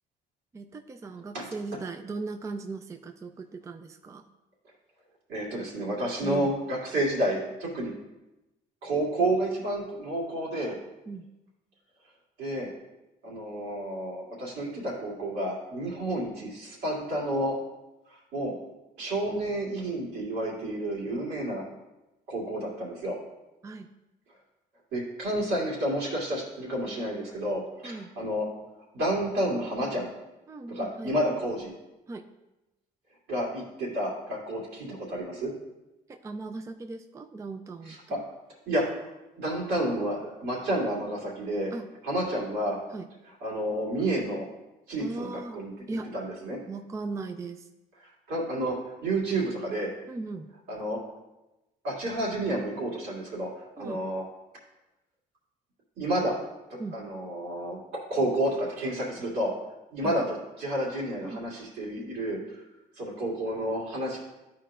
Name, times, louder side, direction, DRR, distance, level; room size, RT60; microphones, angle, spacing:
voice 1, 0.5-4.3 6.2-6.5 11.1-11.3 23.6-23.9 27.8-28.1 30.5-31.2 32.1-32.3 36.1-38.2 41.7-41.9 42.9-43.1 45.0-45.6 45.9-46.1 46.7-47.7 50.1-50.5 53.8-54.0 56.8-57.0 60.0-60.2 61.2-61.5, right 3 dB, 20° right, 7 dB, 0.4 m, -38 dB
voice 2, 5.3-7.9 8.8-10.8 12.4-12.7 13.2-17.6 18.1-18.5 19.0-21.6 22.3-23.2 24.9-28.5 28.9-30.1 30.7-31.7 33.3-35.5 37.8-38.2 38.7-38.8 39.4-41.7 42.0-42.8 43.4-44.5 44.9-45.7 46.1-46.6 48.3-49.9 50.7-51.0 51.8-54.2 56.0-56.4 56.7-59.6 59.9-62.6 63.0-64.2, right 1 dB, 75° right, -4 dB, 2.4 m, -30 dB
12.0 x 4.5 x 2.5 m, 1.0 s
cardioid pair, 110°, 17 cm